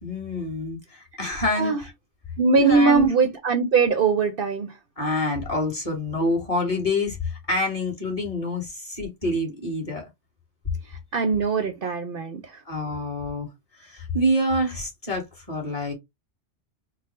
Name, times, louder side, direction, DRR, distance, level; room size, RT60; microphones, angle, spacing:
voice 1, 0.0-1.9 2.6-3.1 5.0-10.0 12.6-13.5 13.7-15.9, left 1 dB, 30° left, 1.7 m, -27 dB
voice 2, 1.5-1.8 2.4-4.7 11.1-12.6, right 4 dB, 60° right, 0.7 m, -21 dB
3.9 x 2.0 x 4.1 m
omnidirectional pair, 1.2 m